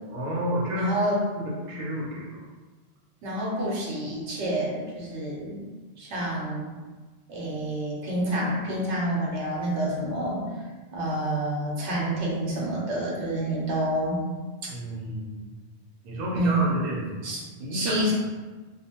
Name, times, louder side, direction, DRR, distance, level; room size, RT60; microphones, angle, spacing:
voice 1, 0.1-0.9 1.4-2.3 14.7-15.5 16.0-17.3 17.6-18.1, equal, 60° right, -4 dB, 0.8 m, -31 dB
voice 2, 0.7-1.2 3.2-5.6 6.0-6.7 7.3-14.2 14.6-14.7 16.3-16.8 17.2-17.4 17.7-18.1, right 1 dB, 90° right, -4 dB, 1.0 m, -28 dB
2.5 x 2.1 x 2.8 m, 1.3 s
omnidirectional pair, 1.1 m